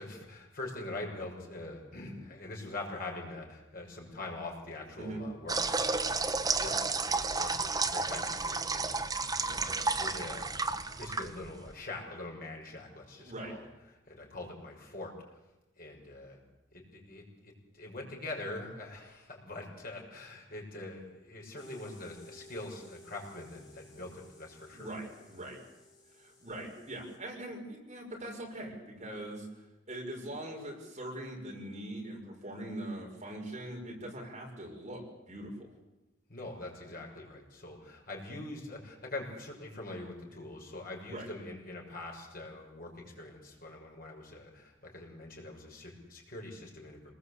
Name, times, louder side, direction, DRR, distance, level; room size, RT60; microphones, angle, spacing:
voice 1, 0.0-6.8 7.1-15.2 15.8-16.4 16.7-24.9 36.3-47.1, left 2 dB, 45° left, 0 dB, 6.3 m, -44 dB
sound 1, 5.5-11.7, right 4 dB, 20° right, 1.1 m, -32 dB
voice 2, 13.2-13.5 24.7-25.6 26.1-35.7 41.1-41.3, right 1 dB, 35° right, 0 dB, 5.8 m, -42 dB
sound 2, 21.6-27.2, left 1 dB, 20° left, 6.7 m, -56 dB
27.0 x 20.0 x 8.3 m, 1.0 s
head